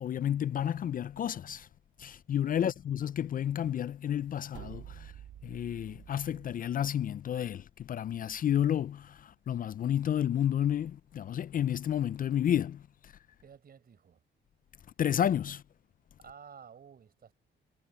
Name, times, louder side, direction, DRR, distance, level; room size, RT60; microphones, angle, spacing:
voice 1, 0.0-1.7 2.0-5.1 5.4-13.1 15.0-15.6, left 10 dB, 45° left, 0.4 m, -31 dB
sound 1, 4.5-6.6, right 11 dB, 75° right, 1.9 m, -48 dB
voice 2, 13.4-14.2 16.2-17.3, right 7 dB, 50° right, 4.9 m, -53 dB
cardioid pair, 90°, 20 cm